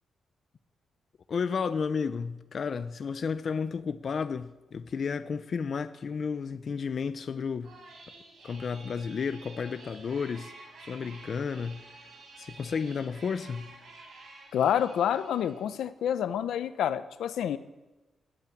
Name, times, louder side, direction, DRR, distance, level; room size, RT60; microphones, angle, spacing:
voice 1, 1.3-7.8 8.4-10.5 10.8-12.1 12.4-13.8, left 5 dB, 40° left, 0.6 m, -32 dB
sound 1, 7.6-15.7, right 3 dB, 60° right, 5.6 m, -50 dB
voice 2, 14.5-17.6, left 9 dB, 85° left, 0.9 m, -28 dB
19.0 x 9.0 x 8.5 m
wide cardioid pair, 160°, 0 cm